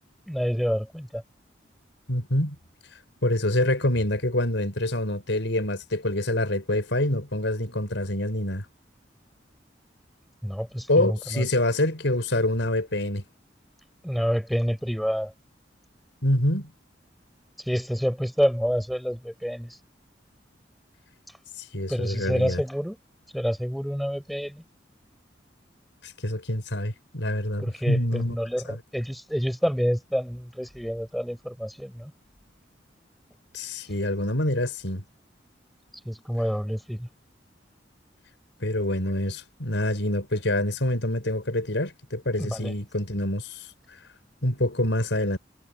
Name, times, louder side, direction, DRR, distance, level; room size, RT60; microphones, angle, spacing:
voice 1, 0.3-1.2 10.4-11.5 14.0-15.3 17.7-19.7 21.9-23.0 23.3-24.6 27.6-32.1 36.1-37.1 42.4-42.7, equal, ahead, 5.9 m, -28 dB
voice 2, 2.1-2.6 3.2-8.7 10.9-13.2 16.2-16.7 21.7-22.6 26.0-28.4 28.7-28.8 33.5-35.0 38.6-43.7 44.4-45.4, left 1 dB, 80° left, 5.4 m, -26 dB
head